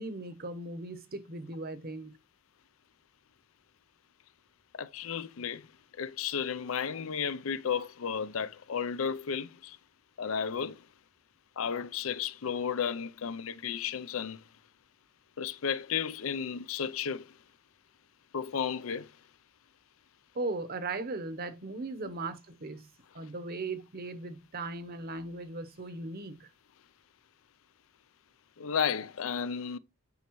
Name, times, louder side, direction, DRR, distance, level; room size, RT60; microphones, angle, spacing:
voice 1, 0.0-2.2 20.3-22.9 23.1-26.5, right 2 dB, 45° right, 0.9 m, -38 dB
voice 2, 4.7-5.7 6.0-9.8 10.2-10.8 11.6-14.4 15.4-17.3 18.3-19.1 28.6-29.8, left 7 dB, 75° left, 0.5 m, -33 dB
9.8 x 5.3 x 3.0 m
head